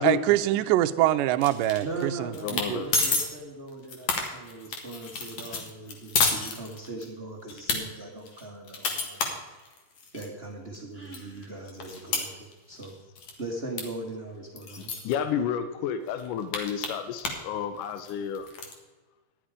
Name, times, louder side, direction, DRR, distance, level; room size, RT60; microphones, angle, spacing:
voice 1, 0.0-2.9, right 14 dB, 80° right, 10 dB, 2.0 m, -24 dB
sound 1, 1.4-2.0 2.3-2.7 2.9-3.3 3.7-7.1 7.5-7.8 8.3-10.3 10.7-10.8 11.1-12.9 13.2-13.4 13.8-13.9 14.1-14.2 14.6-15.1 15.7-15.8 16.1-17.5 17.8-18.7, left 4 dB, 55° left, 2.7 m, -30 dB
voice 2, 1.8-9.4 10.1-12.9 13.4-15.0, right 2 dB, 30° right, -1 dB, 1.2 m, -39 dB
voice 3, 2.4-2.9 14.8-18.5, left 8 dB, 80° left, 10 dB, 2.2 m, -31 dB
13.0 x 10.5 x 5.0 m, 1.3 s
omnidirectional pair, 3.9 m